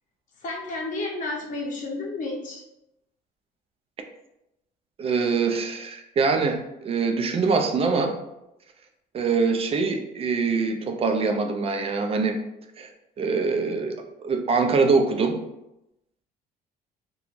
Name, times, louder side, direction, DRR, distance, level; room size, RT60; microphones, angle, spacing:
voice 1, 0.4-2.6, left 2 dB, 50° left, -1 dB, 0.7 m, -31 dB
voice 2, 5.0-8.2 9.1-12.4 12.8-12.9 13.2-14.0 14.2-15.4, right 4 dB, 35° right, 4 dB, 0.4 m, -24 dB
3.0 x 2.2 x 2.5 m, 0.88 s
cardioid pair, 110°, 17 cm